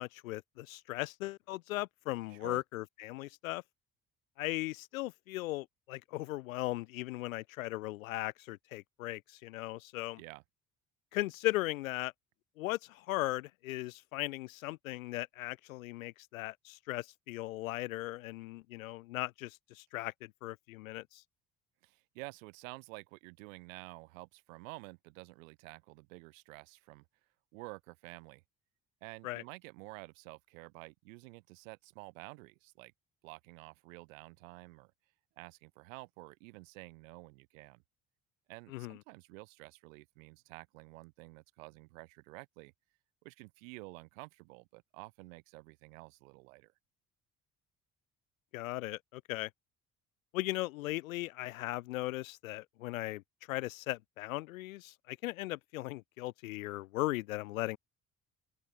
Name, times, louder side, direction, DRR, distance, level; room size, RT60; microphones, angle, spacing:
voice 1, 0.0-3.6 4.4-10.2 11.1-12.1 12.6-21.2 29.2-29.4 38.7-39.0 48.5-49.5 50.3-53.2 53.5-57.8, left 18 dB, 70° left, 0.6 m, -38 dB
voice 2, 2.3-2.6 10.2-10.4 21.8-27.0 27.5-28.4 29.0-32.9 33.2-34.9 35.4-37.8 38.5-42.7 43.2-46.7, right 26 dB, 65° right, 1.9 m, -50 dB
open air
figure-of-eight pair, 50°, 42 cm